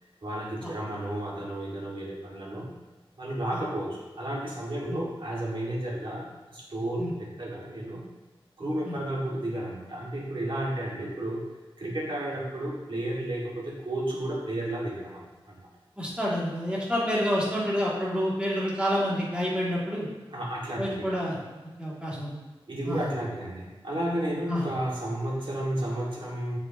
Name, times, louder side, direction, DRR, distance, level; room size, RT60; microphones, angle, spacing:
voice 1, 0.2-2.7 3.2-8.0 8.6-11.4 11.8-15.7 20.3-21.0 22.7-26.6, right 1 dB, 60° right, -5 dB, 2.2 m, -32 dB
voice 2, 16.0-20.1 20.8-21.4 21.8-22.3 22.8-23.1 24.5-24.7, equal, 10° right, -7 dB, 2.5 m, -28 dB
7.3 x 7.0 x 3.0 m, 1.2 s
wide cardioid pair, 85°, 10 cm